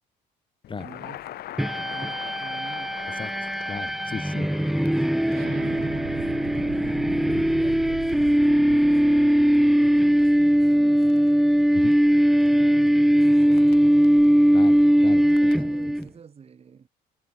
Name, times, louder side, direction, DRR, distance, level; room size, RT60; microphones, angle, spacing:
Crackle, 0.6-16.1, left 14 dB, 70° left, 2.2 m, -45 dB
voice 1, 0.8-1.4 1.8-3.0 4.6-11.5 12.4-14.2 15.1-16.9, right 6 dB, 35° right, 5.2 m, -47 dB
sound 1, 1.6-16.1, equal, ahead, 0.4 m, -20 dB
voice 2, 3.2-4.5 7.3-7.4 11.7-11.9 14.5-15.2, left 5 dB, 30° left, 1.9 m, -36 dB
Explosion, 5.3-10.8, right 15 dB, 75° right, 2.6 m, -39 dB
cardioid pair, 110°, 17 cm